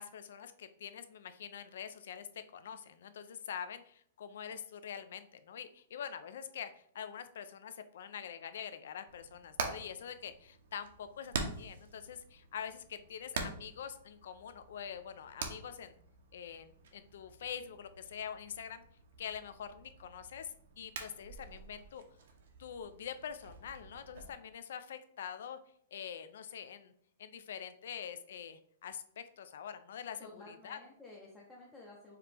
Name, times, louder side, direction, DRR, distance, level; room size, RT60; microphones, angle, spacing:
voice 1, 0.0-16.0 16.3-18.8 19.2-22.0 22.6-25.6 25.9-26.9 27.2-30.8, left 8 dB, 60° left, 11 dB, 0.4 m, -45 dB
Hammer, 9.1-24.3, right 4 dB, 65° right, 0.8 m, -46 dB
voice 2, 30.2-32.2, left 2 dB, 10° left, -4 dB, 0.6 m, -53 dB
4.8 x 2.9 x 3.4 m, 0.66 s
hypercardioid pair, 175°, 0 cm